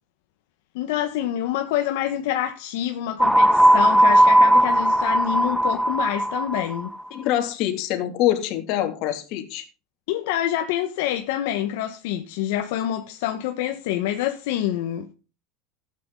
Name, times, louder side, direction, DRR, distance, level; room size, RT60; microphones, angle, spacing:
voice 1, 0.7-6.9 10.1-15.1, left 11 dB, 75° left, 1.4 m, -26 dB
sound 1, 3.2-6.8, right 1 dB, ahead, 0.5 m, -17 dB
voice 2, 7.1-9.6, left 12 dB, 55° left, 2.8 m, -25 dB
14.0 x 8.9 x 3.9 m
supercardioid pair, 135°, 0 cm